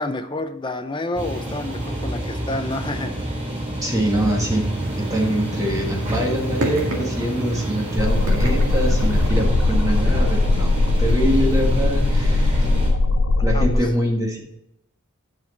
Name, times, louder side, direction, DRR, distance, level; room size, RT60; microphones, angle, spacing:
voice 1, 0.0-3.1 13.5-13.9, left 2 dB, 20° left, 8 dB, 0.6 m, -29 dB
sound 1, 1.1-12.9, right 1 dB, 30° right, 3.4 m, -28 dB
voice 2, 3.8-10.7 11.0-12.7 13.4-14.4, equal, 15° right, -1 dB, 1.5 m, -24 dB
sound 2, 4.6-9.3, right 1 dB, 75° right, 1.9 m, -30 dB
sound 3, 8.0-13.8, left 2 dB, 70° left, 0.7 m, -19 dB
10.5 x 6.0 x 4.1 m, 0.82 s
head